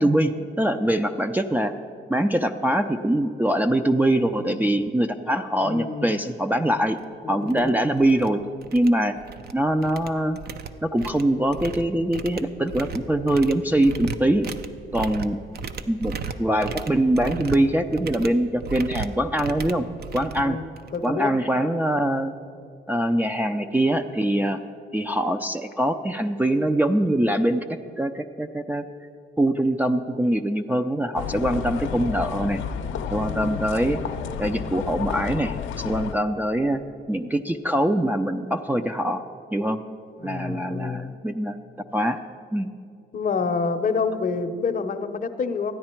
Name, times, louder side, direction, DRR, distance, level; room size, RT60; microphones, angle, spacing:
voice 1, 0.0-1.7 2.1-7.0 7.3-8.4 8.7-9.2 9.5-10.4 10.8-14.5 14.9-15.4 15.9-16.1 16.4-19.9 20.1-20.6 21.0-22.3 22.9-24.6 24.9-28.8 29.4-32.6 33.1-34.0 34.4-36.8 37.1-39.2 39.5-39.8 40.2-41.6 41.9-42.2 42.5-42.7, right 1 dB, 10° right, 3 dB, 0.4 m, -23 dB
voice 2, 5.6-6.2 7.2-7.8 20.4-20.7 20.9-21.3 33.2-33.6 40.2-41.1 43.1-45.7, left 5 dB, 45° left, 9 dB, 0.7 m, -28 dB
sound 1, 6.9-7.0 7.5-7.7 8.0-8.3 8.6-9.5 9.8-21.1, right 5 dB, 55° right, 0.6 m, -36 dB
sound 2, 31.1-36.1, left 7 dB, 75° left, 0.6 m, -31 dB
14.0 x 9.5 x 4.4 m, 2.4 s
cardioid pair, 90°, 20 cm